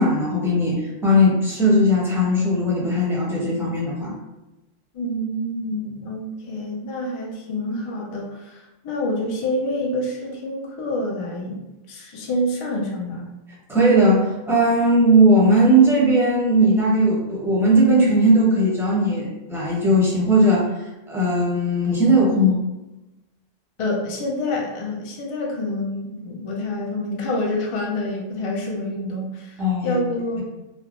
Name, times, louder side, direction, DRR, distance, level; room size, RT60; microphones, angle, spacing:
voice 1, 0.0-4.1 13.7-20.7 21.1-22.6 29.6-30.0, right 1 dB, 5° right, -6 dB, 0.6 m, -18 dB
voice 2, 4.9-11.6 11.9-13.3 23.8-30.4, left 1 dB, 60° left, -2 dB, 0.3 m, -27 dB
3.2 x 2.1 x 2.4 m, 1.0 s
omnidirectional pair, 1.0 m